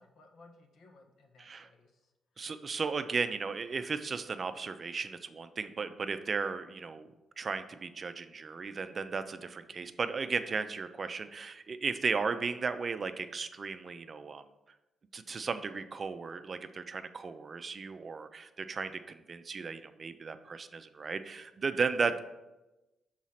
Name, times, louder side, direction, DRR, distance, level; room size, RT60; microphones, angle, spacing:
voice 1, 0.0-2.0, left 3 dB, 70° left, 2 dB, 1.1 m, -59 dB
voice 2, 1.4-1.7 2.4-14.4 15.1-22.2, right 5 dB, 45° right, 10 dB, 0.5 m, -35 dB
6.2 x 4.0 x 5.7 m, 1.0 s
cardioid pair, 80°, 0 cm